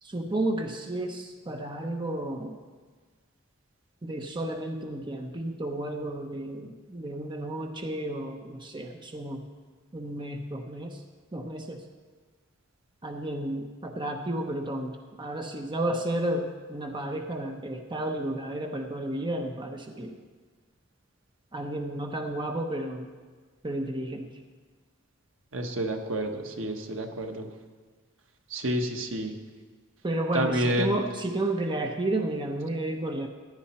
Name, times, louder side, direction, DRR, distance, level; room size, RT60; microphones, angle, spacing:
voice 1, 0.0-2.6 4.0-9.4 9.9-11.0 11.3-11.8 13.0-20.1 21.5-23.1 23.6-24.3 30.0-33.3, right 1 dB, 25° right, 3 dB, 0.8 m, -32 dB
voice 2, 25.5-27.5 28.5-29.3 30.3-31.0, right 1 dB, 70° right, 4 dB, 1.2 m, -29 dB
15.5 x 10.5 x 4.3 m, 1.4 s
head